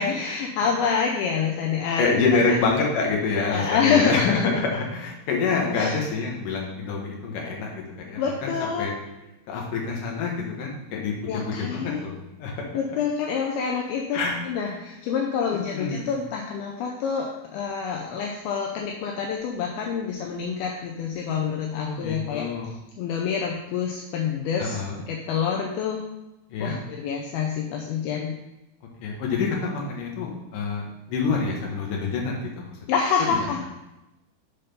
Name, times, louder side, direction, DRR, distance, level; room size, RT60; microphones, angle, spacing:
voice 1, 0.0-2.1 2.4-2.6 3.5-4.5 5.7-6.0 8.2-8.9 11.3-12.0 12.7-22.5 23.0-24.8 25.1-26.0 26.6-28.3 32.9-33.6, left 6 dB, 80° left, 0 dB, 2.4 m, -27 dB
voice 2, 2.0-8.9 9.5-12.5 14.1-14.7 15.7-16.1 21.7-22.7 24.6-25.0 26.5-26.7 29.0-32.8, left 4 dB, 65° left, -1 dB, 2.5 m, -27 dB
6.7 x 4.1 x 5.3 m, 0.94 s
omnidirectional pair, 4.6 m